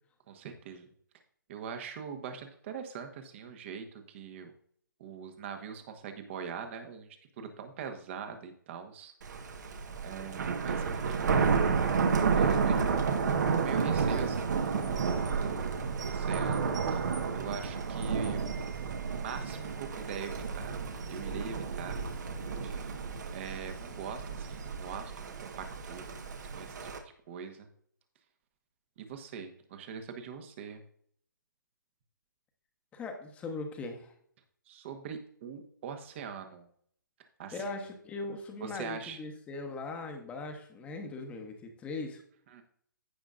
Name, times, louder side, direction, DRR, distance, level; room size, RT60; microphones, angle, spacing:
voice 1, 0.3-0.9 1.5-4.5 5.0-7.1 7.4-9.1 10.0-11.4 12.3-13.2 13.6-14.8 15.4-17.0 17.3-18.4 18.8-20.8 21.1-22.0 22.6-22.9 23.3-26.1 26.5-27.7 29.0-30.8 34.7-36.7 37.4-37.9 38.6-39.2 42.5-42.6, right 6 dB, 35° right, 6 dB, 1.3 m, -42 dB
Thunder, 9.2-27.0, right 5 dB, 55° right, 1.3 m, -31 dB
voice 2, 32.9-34.1 37.5-42.2, left 3 dB, 10° left, 4 dB, 1.1 m, -40 dB
15.0 x 5.1 x 2.5 m, 0.63 s
hypercardioid pair, 145°, 11 cm